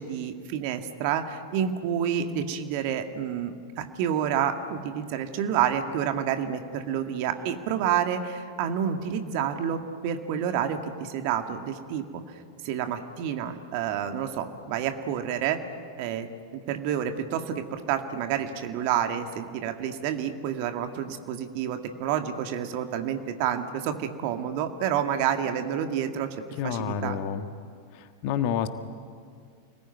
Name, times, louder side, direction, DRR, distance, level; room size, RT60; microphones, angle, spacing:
voice 1, 0.0-12.2 12.6-15.6 16.0-26.3 26.6-27.2, right 9 dB, 45° right, 6 dB, 2.0 m, -29 dB
voice 2, 26.6-27.4 27.9-28.7, left 8 dB, 45° left, 9 dB, 1.5 m, -29 dB
29.0 x 20.0 x 9.4 m, 2.2 s
figure-of-eight pair, 90°, 0 cm